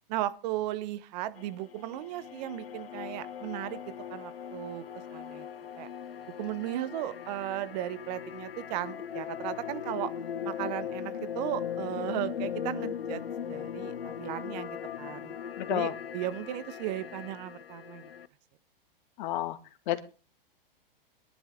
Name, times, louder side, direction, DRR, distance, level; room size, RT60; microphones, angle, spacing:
voice 1, 0.1-4.8 5.1-5.5 5.8-5.9 6.4-10.1 10.4-13.2 13.5-15.3 15.7-18.1, right 14 dB, 45° right, 16 dB, 1.1 m, -36 dB
sound 1, 1.4-18.3, left 8 dB, 90° left, 0.8 m, -39 dB
voice 2, 15.6-15.9 19.2-19.6 19.9-20.0, left 13 dB, 55° left, 8 dB, 1.9 m, -30 dB
22.0 x 11.0 x 3.6 m, 0.35 s
hypercardioid pair, 120°, 29 cm